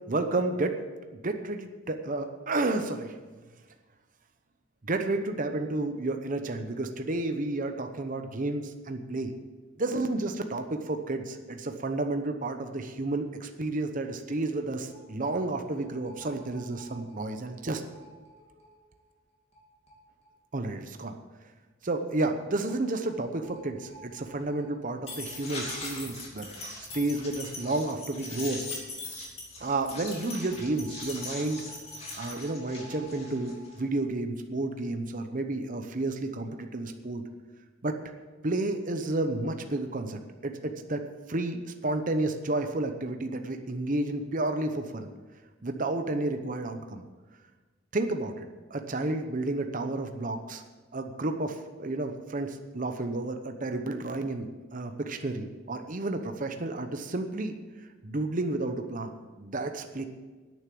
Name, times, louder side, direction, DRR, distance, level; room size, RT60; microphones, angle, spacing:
voice 1, 0.1-0.8 1.2-3.2 4.8-9.3 9.8-17.8 20.5-21.2 21.8-26.5 26.9-28.6 29.6-31.6 32.1-37.2 37.8-38.0 38.4-41.0 41.3-45.1 45.6-47.0 47.9-50.6 50.9-57.5 58.0-60.0, right 2 dB, 40° right, 6 dB, 0.9 m, -31 dB
sound 1, 14.9-15.0 15.3-15.4 15.6-18.8 19.6-19.7 19.9-20.0 20.2-20.3 22.3-22.4 22.6-22.7 23.0-34.0, left 2 dB, 30° left, 2.7 m, -42 dB
10.5 x 9.3 x 7.7 m, 1.3 s
head